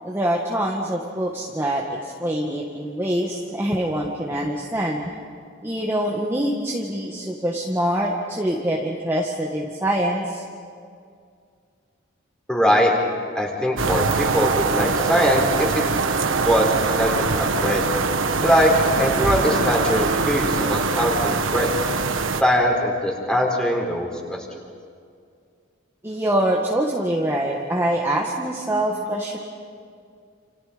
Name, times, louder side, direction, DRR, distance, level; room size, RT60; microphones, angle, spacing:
voice 1, 0.0-5.1 5.6-10.5 26.0-29.4, right 1 dB, 10° right, -2 dB, 1.7 m, -24 dB
voice 2, 12.5-12.9 13.3-15.8 16.4-17.8 18.4-18.7 19.0-21.7 22.4-24.4, equal, 5° left, 0 dB, 4.2 m, -21 dB
sound 1, 13.8-22.4, right 4 dB, 85° right, 1.3 m, -23 dB
29.5 x 28.5 x 5.2 m, 2.3 s
head